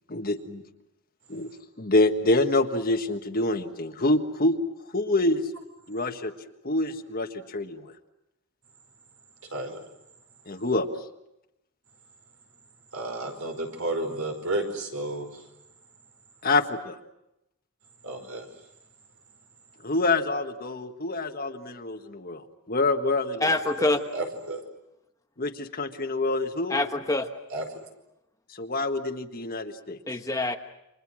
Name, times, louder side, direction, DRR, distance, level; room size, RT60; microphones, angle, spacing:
voice 1, 0.1-0.6 1.3-1.5 1.8-4.6 4.9-5.4 5.9-6.3 6.6-7.9 10.5-10.9 16.4-17.0 19.8-23.5 25.4-26.7 28.5-30.0, left 2 dB, 40° left, 6 dB, 1.6 m, -26 dB
voice 2, 12.9-15.3 18.0-18.5 23.8-24.6 27.5-27.6, right 2 dB, 65° right, 5 dB, 5.1 m, -32 dB
voice 3, 23.4-24.0 26.7-27.3 30.1-30.6, left 2 dB, 15° left, 6 dB, 1.1 m, -25 dB
29.5 x 26.0 x 6.3 m, 0.87 s
head